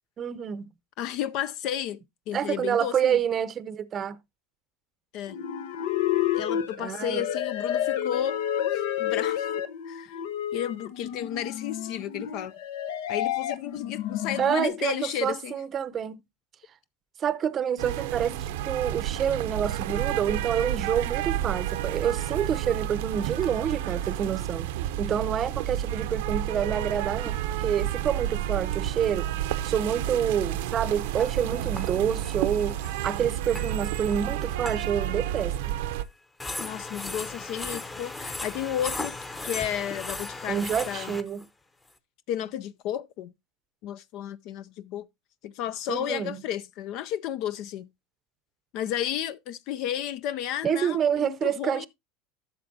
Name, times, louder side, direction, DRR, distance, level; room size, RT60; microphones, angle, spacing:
voice 1, 0.2-0.7 2.3-4.2 6.8-7.2 14.4-16.2 17.2-24.7 25.0-29.3 29.6-32.8 33.0-35.8 40.5-41.4 45.9-46.4 50.6-51.9, right 8 dB, 30° right, 0.6 m, -28 dB
voice 2, 1.0-3.2 5.1-5.4 6.3-8.4 8.7-9.5 9.8-10.2 10.5-12.6 13.1-15.6 36.6-39.1 39.4-41.2 42.3-43.3 43.8-45.1 45.4-47.9 48.7-51.9, left 10 dB, 55° left, 0.5 m, -33 dB
sound 1, 5.3-14.7, left 10 dB, 80° left, 0.9 m, -30 dB
sound 2, 17.8-36.0, right 12 dB, 80° right, 0.7 m, -30 dB
sound 3, 22.6-22.7 23.4-23.5 25.2-25.3 27.2-28.4 28.7-28.9 29.2-29.3 29.5-29.6 30.4-35.6 35.9-36.0 36.4-41.5, left 2 dB, 15° left, 0.9 m, -38 dB
12.0 x 6.7 x 2.7 m
supercardioid pair, 125°, 0 cm